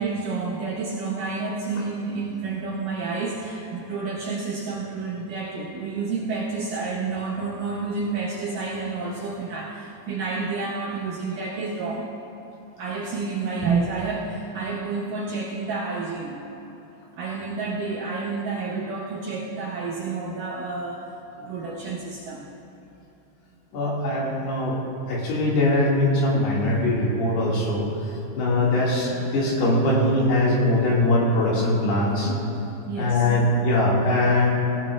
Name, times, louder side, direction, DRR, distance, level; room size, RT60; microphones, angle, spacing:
voice 1, 0.0-12.1 12.8-16.4 17.2-21.1 21.5-22.5 32.9-33.3, right 4 dB, 75° right, -3 dB, 2.0 m, -29 dB
voice 2, 23.7-24.8 25.1-27.9 28.4-32.5 33.0-34.5, left 1 dB, 75° left, -5 dB, 4.1 m, -21 dB
18.0 x 16.5 x 2.4 m, 2.9 s
omnidirectional pair, 4.8 m